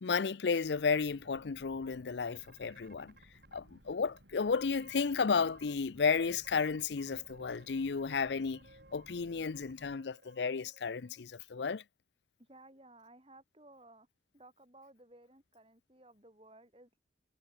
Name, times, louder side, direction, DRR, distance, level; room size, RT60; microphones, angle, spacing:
voice 1, 0.0-3.1 3.5-8.6 8.9-11.8, left 5 dB, 80° left, 0.5 m, -33 dB
Boat Water vehicle, 0.6-10.0, equal, 85° right, 7.2 m, -61 dB
sound 1, 2.2-3.6 4.1-4.2 4.5-5.7 6.0-11.2, right 3 dB, 55° right, 6.2 m, -61 dB
voice 2, 12.4-14.1 14.3-17.0, right 2 dB, 30° right, 4.4 m, -58 dB
head